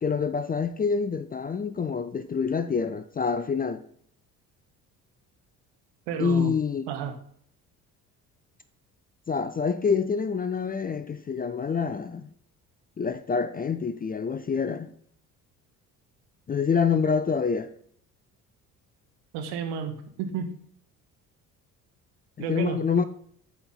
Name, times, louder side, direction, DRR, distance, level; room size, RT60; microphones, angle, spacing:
voice 1, 0.0-3.8 6.2-6.8 9.3-12.3 13.0-14.9 16.5-17.7 22.5-23.0, left 5 dB, 20° left, 0.5 m, -26 dB
voice 2, 6.1-6.5 6.9-7.1 19.3-20.5 22.4-22.8, right 7 dB, 65° right, 1.4 m, -31 dB
8.8 x 4.3 x 5.5 m
figure-of-eight pair, 55°, 45 cm